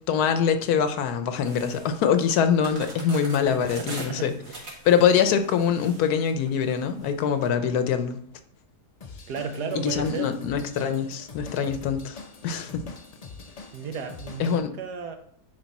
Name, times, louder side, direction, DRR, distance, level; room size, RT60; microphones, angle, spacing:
voice 1, 0.1-4.3 4.8-8.2 9.7-12.8 14.4-14.7, left 7 dB, 75° left, 1.2 m, -24 dB
sound 1, 1.4-7.5, right 2 dB, 60° right, 2.1 m, -43 dB
voice 2, 3.5-4.6 9.3-10.3 13.7-15.2, right 5 dB, 85° right, 1.4 m, -34 dB
Drum kit / Drum, 9.0-14.6, left 4 dB, 50° left, 0.4 m, -43 dB
9.6 x 3.5 x 4.1 m
omnidirectional pair, 1.7 m